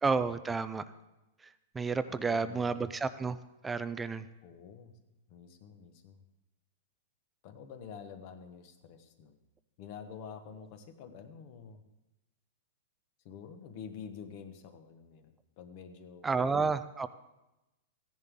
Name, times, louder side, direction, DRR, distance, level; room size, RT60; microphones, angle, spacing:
voice 1, 0.0-0.8 1.4-3.4 3.6-4.3 16.2-17.1, right 4 dB, 10° right, 13 dB, 0.4 m, -31 dB
voice 2, 2.1-2.8 4.4-4.9 5.3-6.2 7.4-9.4 9.8-11.8 13.2-16.3, left 7 dB, 40° left, 8 dB, 1.1 m, -48 dB
14.5 x 10.5 x 3.6 m, 0.96 s
supercardioid pair, 165°, 0 cm